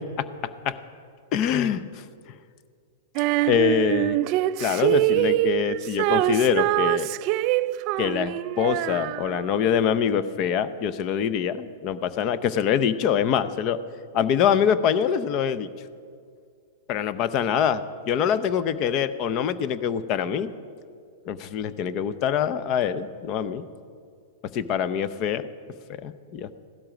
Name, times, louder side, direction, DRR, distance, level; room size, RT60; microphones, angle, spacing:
voice 1, 1.3-1.8 3.5-4.2 4.6-7.1 8.0-13.8 14.1-15.7 16.9-20.5 21.2-23.7 24.5-25.5 26.0-26.5, left 8 dB, 40° left, 14 dB, 0.7 m, -24 dB
Female singing, 3.2-9.6, right 16 dB, 40° right, 0.3 m, -24 dB
16.5 x 12.5 x 5.1 m, 2.2 s
hypercardioid pair, 140°, 0 cm